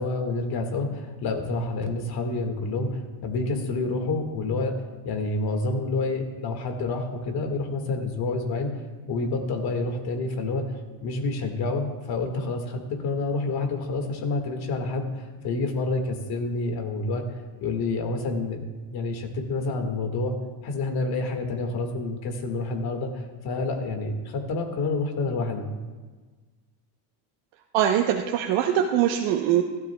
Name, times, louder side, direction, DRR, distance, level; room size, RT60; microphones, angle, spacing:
voice 1, 0.0-4.8 5.0-8.7 9.1-10.7 11.0-17.2 17.6-18.6 18.9-20.4 20.6-25.7, left 3 dB, 50° left, 4 dB, 2.0 m, -28 dB
voice 2, 27.7-29.6, right 10 dB, 75° right, 1 dB, 1.0 m, -22 dB
16.0 x 12.0 x 2.3 m, 1.4 s
cardioid pair, 120°, 47 cm